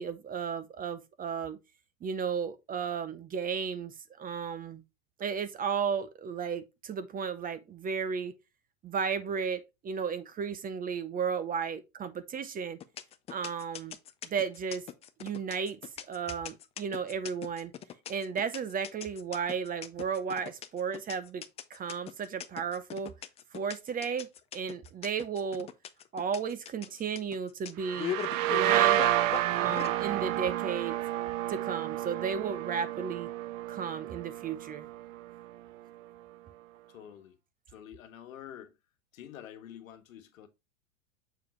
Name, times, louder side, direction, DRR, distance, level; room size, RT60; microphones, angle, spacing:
voice 1, 0.0-1.6 2.0-3.9 4.2-4.8 5.2-8.3 8.8-12.8 13.3-14.0 14.2-14.8 15.2-15.8 16.1-17.7 18.1-21.4 21.7-23.1 23.5-24.3 24.5-25.7 26.1-28.1 28.5-29.1 29.6-31.0 31.5-33.3 33.7-34.9, right 6 dB, 20° right, 0.7 m, -34 dB
sound 1, 12.8-29.9, left 10 dB, 15° left, 0.4 m, -40 dB
sound 2, 27.8-35.4, right 14 dB, 65° right, 0.8 m, -30 dB
voice 2, 36.9-37.4 37.7-38.7 39.1-40.5, left 10 dB, 75° left, 1.3 m, -47 dB
7.1 x 4.7 x 3.1 m
hypercardioid pair, 110°, 41 cm